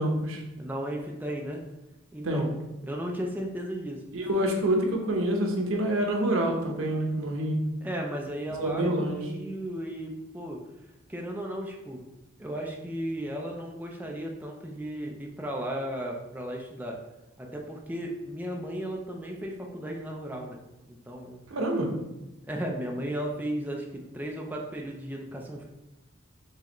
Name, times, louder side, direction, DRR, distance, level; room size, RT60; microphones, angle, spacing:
voice 1, 0.0-0.4 2.2-2.5 4.1-7.6 8.6-9.2 21.5-21.9, right 1 dB, 90° right, 1 dB, 0.8 m, -27 dB
voice 2, 0.6-1.6 2.1-2.5 2.8-4.0 7.8-10.6 11.1-12.0 12.4-17.0 17.4-20.6 20.9-21.4 22.5-25.6, right 1 dB, 10° right, 0 dB, 0.4 m, -35 dB
4.7 x 3.4 x 3.0 m, 0.97 s
head